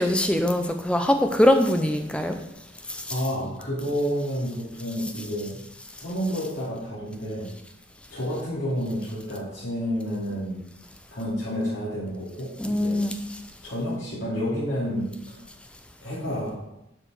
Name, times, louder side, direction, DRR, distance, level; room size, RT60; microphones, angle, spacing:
voice 1, 0.0-2.4 2.9-3.0 12.6-13.1, left 1 dB, 5° left, 6 dB, 0.6 m, -22 dB
voice 2, 3.1-5.6 6.0-7.5 8.1-10.6 11.1-13.0 13.6-15.4 16.0-16.6, equal, 80° left, -10 dB, 2.8 m, -30 dB
7.6 x 4.9 x 6.5 m, 0.88 s
head